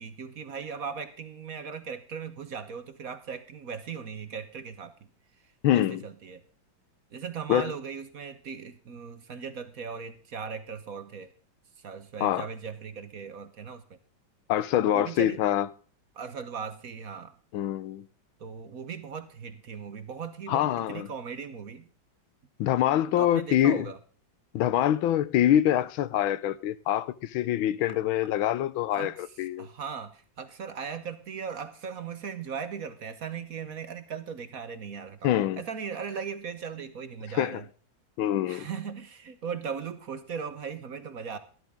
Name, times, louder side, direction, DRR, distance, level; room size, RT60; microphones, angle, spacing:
voice 1, 0.0-4.9 5.7-6.4 7.1-11.3 11.8-13.8 14.9-15.4 16.1-17.3 18.4-21.9 23.2-24.0 27.9-28.0 28.9-29.3 29.6-37.6 38.5-41.4, right 6 dB, 50° right, 1.3 m, -38 dB
voice 2, 5.6-6.0 7.5-7.7 12.2-12.5 14.5-15.7 17.5-18.1 20.5-21.1 22.6-23.8 24.5-29.7 35.2-35.6 37.3-37.6 38.2-38.7, left 12 dB, 80° left, 1.6 m, -25 dB
13.5 x 13.0 x 3.6 m
omnidirectional pair, 2.2 m